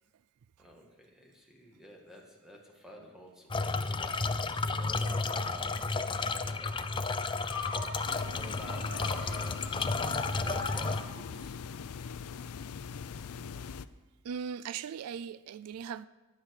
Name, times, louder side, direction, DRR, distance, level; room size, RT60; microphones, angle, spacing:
voice 1, 0.6-6.7 8.1-9.6 10.4-11.6, equal, ahead, 2.1 m, -49 dB
sound 1, 3.5-11.0, left 3 dB, 20° left, 0.4 m, -32 dB
sound 2, 7.5-11.6, left 4 dB, 60° left, 2.4 m, -42 dB
sound 3, 8.1-13.9, left 6 dB, 85° left, 0.5 m, -42 dB
voice 2, 14.2-16.1, right 7 dB, 85° right, 0.4 m, -39 dB
20.0 x 7.6 x 4.9 m
head